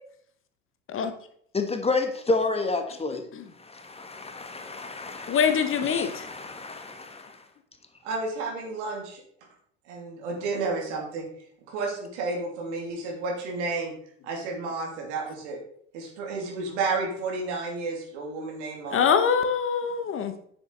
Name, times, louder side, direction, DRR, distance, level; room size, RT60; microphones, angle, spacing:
voice 1, 1.5-3.3 3.6-7.4, left 3 dB, 15° left, 6 dB, 1.2 m, -30 dB
voice 2, 5.3-6.2 18.9-20.3, left 7 dB, 35° left, 8 dB, 1.1 m, -24 dB
voice 3, 8.0-9.2 9.9-11.3 11.7-13.9 14.2-15.6 15.9-19.0, right 3 dB, 65° right, 0 dB, 2.8 m, -31 dB
9.6 x 6.9 x 3.9 m, 0.65 s
figure-of-eight pair, 70°, 38 cm